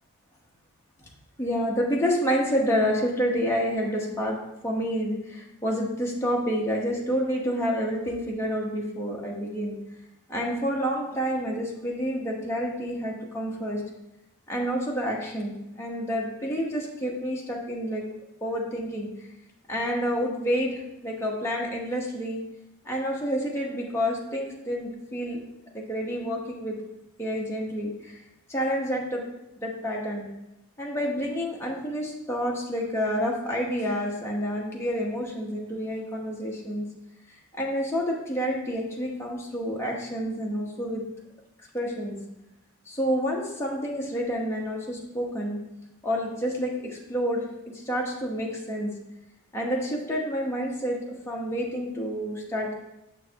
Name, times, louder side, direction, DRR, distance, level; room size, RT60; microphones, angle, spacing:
voice 1, 1.4-4.4 4.6-9.8 10.3-13.8 14.5-18.0 18.4-19.1 19.7-22.4 22.8-25.4 25.7-26.8 27.2-28.2 28.5-29.2 29.6-30.3 30.8-36.9 37.5-41.0 41.7-42.2 42.9-45.6 46.0-47.4 47.7-48.9 49.5-52.7, equal, 10° left, -3 dB, 1.1 m, -29 dB
6.6 x 6.4 x 2.8 m, 0.91 s
head